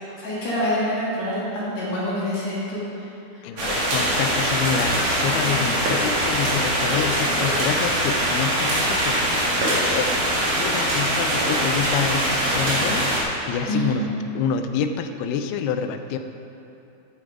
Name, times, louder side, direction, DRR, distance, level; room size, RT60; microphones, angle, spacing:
voice 1, 0.2-3.1 13.7-14.0, equal, 50° left, -8 dB, 3.3 m, -26 dB
voice 2, 3.4-10.1 10.6-16.2, left 7 dB, 85° left, 8 dB, 2.5 m, -27 dB
sound 1, 3.6-13.2, right 1 dB, 50° right, 3.0 m, -22 dB
11.0 x 9.1 x 4.8 m, 2.8 s
omnidirectional pair, 4.4 m